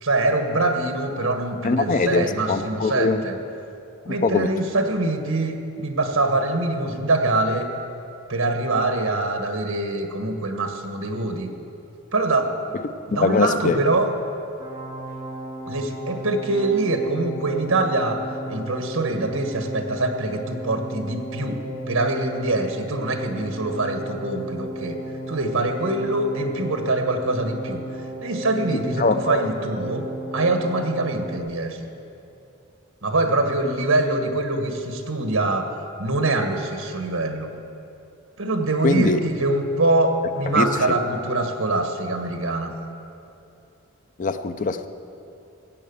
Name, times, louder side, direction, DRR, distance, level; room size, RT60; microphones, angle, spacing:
voice 1, 0.0-3.4 4.1-7.7 8.3-11.5 12.1-12.8 13.1-14.1 15.6-18.2 18.5-25.0 25.3-27.8 28.2-31.9 33.0-35.7 36.0-37.5 38.4-42.7, right 2 dB, 75° right, 5 dB, 1.4 m, -24 dB
voice 2, 1.6-3.2 4.1-4.5 13.1-13.8 28.7-29.5 38.8-39.2 40.5-40.7 44.2-44.9, left 3 dB, 40° left, 10 dB, 0.5 m, -22 dB
sound 1, 14.6-31.4, right 1 dB, 15° right, 2.6 m, -35 dB
16.5 x 7.9 x 6.9 m, 2.7 s
head